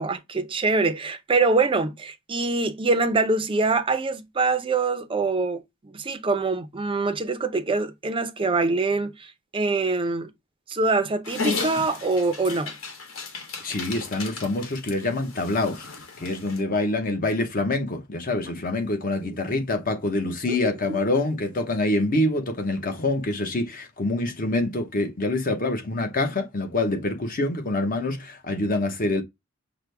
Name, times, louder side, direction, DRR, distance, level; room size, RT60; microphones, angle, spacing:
voice 1, 0.0-10.3 10.7-12.7 20.5-20.6, right 3 dB, 25° right, 0.5 m, -24 dB
Dog, 11.2-16.6, left 4 dB, 85° left, 1.2 m, -34 dB
voice 2, 13.6-15.9 16.2-29.2, left 2 dB, 45° left, 0.9 m, -26 dB
5.9 x 2.2 x 3.2 m
head